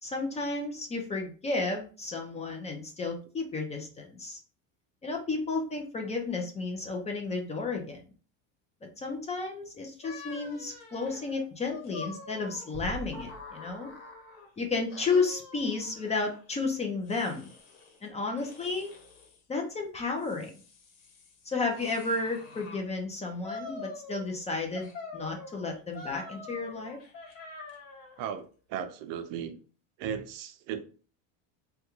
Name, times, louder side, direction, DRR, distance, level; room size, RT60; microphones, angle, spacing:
voice 1, 0.0-4.4 5.0-8.0 9.0-13.9 14.6-17.5 18.0-18.9 19.5-20.5 21.5-27.0, left 3 dB, 20° left, 3 dB, 0.4 m, -32 dB
sound 1, 10.0-14.5 14.9-16.4 17.1-18.0 18.4-19.4 20.0-22.8 23.4-24.4 24.7-28.2, left 4 dB, 55° left, 1.2 m, -46 dB
sound 2, 12.7-14.3, right 1 dB, 10° right, 0.8 m, -43 dB
voice 2, 28.2-29.6 30.0-31.1, right 8 dB, 60° right, 9 dB, 0.5 m, -36 dB
3.5 x 2.2 x 2.9 m, 0.38 s
cardioid pair, 135°, 38 cm